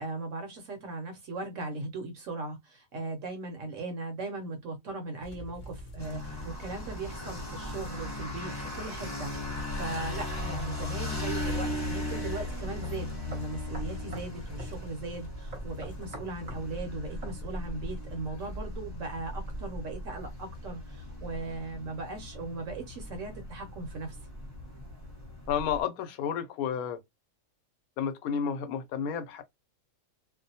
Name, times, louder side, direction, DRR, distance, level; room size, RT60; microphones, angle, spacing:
voice 1, 0.0-24.2, right 3 dB, 65° right, 1.0 m, -38 dB
sound 1, 5.2-19.8, right 1 dB, 50° left, 0.6 m, -48 dB
sound 2, 6.0-25.8, left 2 dB, 15° left, 0.9 m, -38 dB
sound 3, 12.1-12.3 12.8-12.9 13.3-14.3 14.6-14.8 15.5-16.7 17.2-17.4, right 1 dB, 35° right, 0.8 m, -43 dB
voice 2, 25.5-27.0 28.0-29.4, left 7 dB, 85° left, 1.0 m, -31 dB
2.5 x 2.1 x 2.7 m
omnidirectional pair, 1.5 m